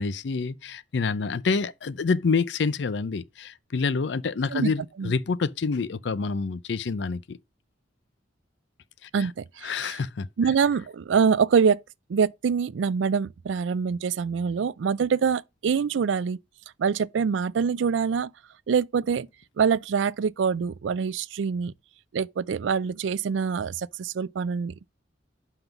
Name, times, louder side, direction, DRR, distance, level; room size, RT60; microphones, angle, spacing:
voice 1, 0.0-7.4 9.0-9.3 9.6-10.3, left 4 dB, 65° left, 0.5 m, -27 dB
voice 2, 9.1-10.0 10.4-11.8 12.1-16.4 16.8-18.3 18.7-19.3 19.6-21.7 22.1-24.9, right 6 dB, 80° right, 0.4 m, -25 dB
5.8 x 5.3 x 5.8 m
head